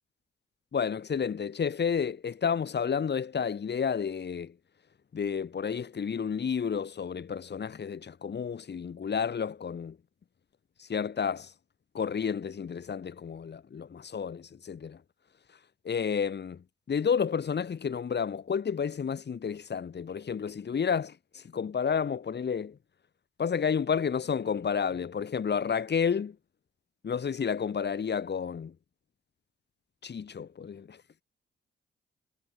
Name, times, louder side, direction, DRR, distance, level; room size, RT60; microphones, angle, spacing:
voice 1, 0.7-4.5 5.1-10.0 10.8-11.5 11.9-15.0 15.8-22.8 23.4-26.3 27.0-28.7 30.0-31.0, left 6 dB, 55° left, 2.9 m, -31 dB
supercardioid pair, 55°, 21 cm